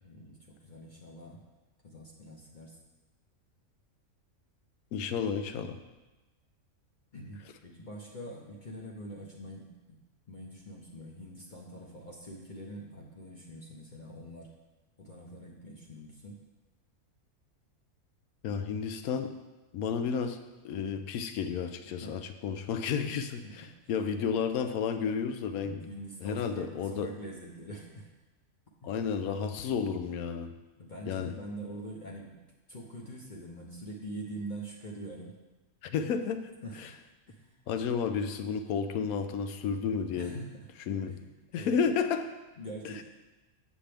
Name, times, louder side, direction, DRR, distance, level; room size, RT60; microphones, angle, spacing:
voice 1, 0.0-1.4 1.8-2.8 7.1-10.0 10.3-14.5 15.0-16.4 21.9-22.2 22.9-23.1 23.4-23.5 23.8-24.0 25.6-28.1 28.8-29.0 30.8-32.4 32.7-35.3 36.6-36.9 37.3-37.6 40.2-42.0 42.6-43.0, right 1 dB, 40° left, -2 dB, 0.9 m, -44 dB
voice 2, 4.9-5.8 18.4-19.3 19.7-20.4 20.6-25.8 26.2-27.1 28.8-30.5 31.1-31.3 35.8-36.5 36.8-36.9 37.7-40.4 40.9-41.2 41.5-42.3 43.0-43.1, left 6 dB, 85° left, 8 dB, 1.0 m, -32 dB
7.3 x 7.2 x 3.4 m, 1.1 s
omnidirectional pair, 1.5 m